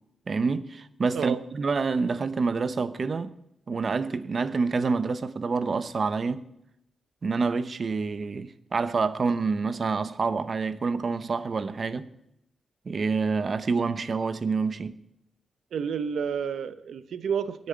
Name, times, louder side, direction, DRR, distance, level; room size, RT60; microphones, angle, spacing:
voice 1, 0.3-3.4 3.7-6.4 7.2-12.1 12.9-15.0, right 4 dB, 50° right, 0.8 m, -27 dB
voice 2, 15.7-17.7, right 7 dB, 85° right, 0.8 m, -30 dB
10.5 x 9.6 x 8.8 m
cardioid pair, 90°, 0 cm